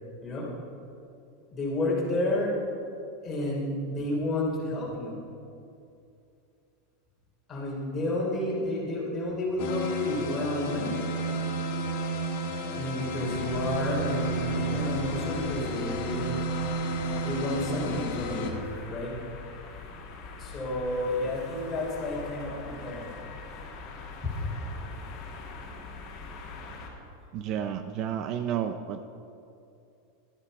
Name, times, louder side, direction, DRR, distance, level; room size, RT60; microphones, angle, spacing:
voice 1, 1.5-2.5 3.2-5.1 7.5-10.9 12.8-16.4 17.2-18.6 18.9-19.1 20.4-23.1 24.2-24.4, left 1 dB, 20° left, -4 dB, 3.3 m, -30 dB
sound 1, 9.6-18.5, right 1 dB, 60° left, 1.5 m, -32 dB
sound 2, 13.2-26.9, left 4 dB, 40° left, 2.1 m, -43 dB
voice 2, 27.3-29.0, right 9 dB, 40° right, 9 dB, 0.5 m, -31 dB
12.5 x 9.8 x 5.3 m, 2.6 s
supercardioid pair, 150°, 0 cm